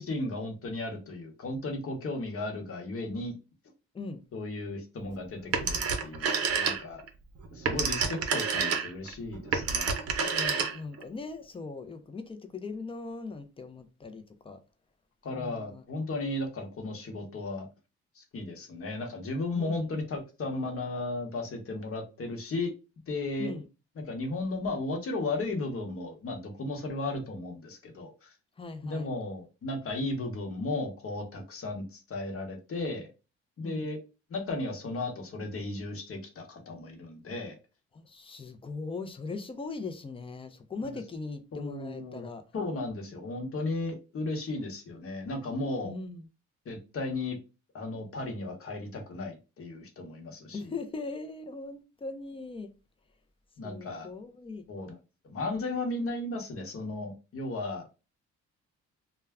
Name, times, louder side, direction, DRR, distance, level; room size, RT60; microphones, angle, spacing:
voice 1, 0.0-3.4 4.3-7.0 7.5-9.9 15.2-17.7 18.1-22.7 23.1-23.5 24.1-28.3 28.8-33.1 33.6-34.0 34.3-37.6 40.8-41.0 41.5-42.3 42.5-45.9 46.6-47.4 47.7-50.7 53.6-54.1 54.7-55.0 55.2-57.8, left 2 dB, 45° left, 1.0 m, -35 dB
Telephone, 5.5-7.1 7.4-11.0, right 5 dB, 50° right, 0.7 m, -29 dB
voice 2, 10.3-14.6 15.3-15.8 19.5-19.9 23.4-23.7 28.6-29.1 33.6-33.9 37.9-42.4 45.8-46.3 50.5-52.7 53.6-54.6, left 3 dB, 20° left, 0.4 m, -40 dB
2.2 x 2.1 x 3.5 m
cardioid pair, 90°, 30 cm